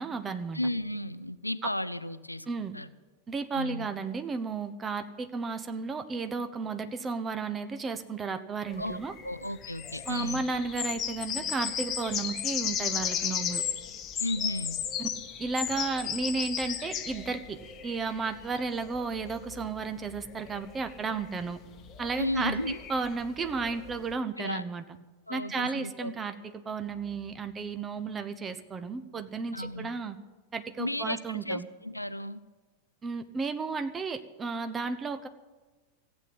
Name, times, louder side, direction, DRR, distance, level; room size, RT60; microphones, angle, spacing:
voice 1, 0.0-0.6 1.6-1.7 2.5-2.7 3.3-9.1 10.1-13.6 15.4-17.6 17.8-21.6 22.0-24.8 25.3-26.3 26.6-30.2 30.5-31.7 33.0-35.3, right 4 dB, 20° right, 9 dB, 1.0 m, -33 dB
voice 2, 0.5-2.9 3.5-3.9 8.8-10.4 14.2-14.8 22.2-22.8 24.4-24.6 25.3-26.1 29.5-29.9 30.8-32.4, left 1 dB, 85° left, 14 dB, 0.5 m, -34 dB
sound 1, 8.7-24.1, left 8 dB, 30° left, 1.2 m, -36 dB
15.0 x 8.5 x 9.5 m, 1.3 s
figure-of-eight pair, 90°, 0 cm